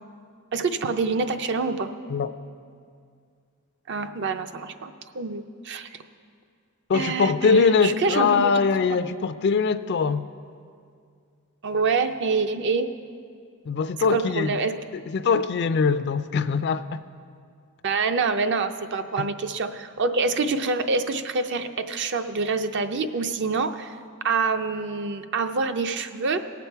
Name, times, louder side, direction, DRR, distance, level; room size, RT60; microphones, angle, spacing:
voice 1, 0.5-1.9 3.9-5.9 6.9-8.5 11.6-12.9 14.1-14.7 17.8-24.0 24.2-26.4, right 4 dB, 55° right, 0.5 m, -26 dB
voice 2, 6.9-10.2 13.7-14.6 14.9-17.0 19.2-19.3, left 5 dB, 55° left, 0.4 m, -22 dB
18.0 x 7.0 x 4.5 m
head